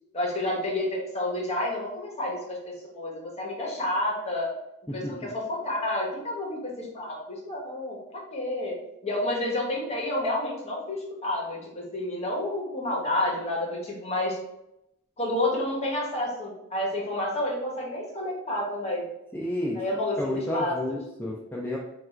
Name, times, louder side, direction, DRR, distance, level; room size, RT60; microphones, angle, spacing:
voice 1, 0.1-4.5 4.9-8.7 9.0-14.4 15.2-19.0 19.7-21.0, left 1 dB, 30° left, -2 dB, 1.1 m, -30 dB
voice 2, 19.3-19.8 20.2-21.8, left 1 dB, 10° left, -5 dB, 0.5 m, -31 dB
3.4 x 2.4 x 4.3 m, 0.85 s
head